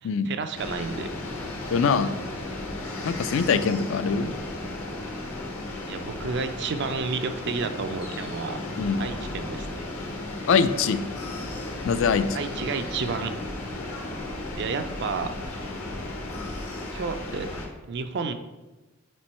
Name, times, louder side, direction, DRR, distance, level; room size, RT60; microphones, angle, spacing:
voice 1, 0.0-1.1 5.9-8.6 9.0-9.9 12.3-13.3 14.6-15.4 16.9-17.5 17.9-18.3, right 4 dB, 50° right, 8 dB, 0.4 m, -31 dB
sound 1, 0.5-17.7, left 2 dB, 80° left, 1.2 m, -34 dB
voice 2, 1.7-2.1 3.0-4.3 8.8-9.0 10.5-11.0 11.8-12.4, left 5 dB, 60° left, 11 dB, 0.3 m, -23 dB
5.2 x 4.4 x 4.3 m, 1.1 s
head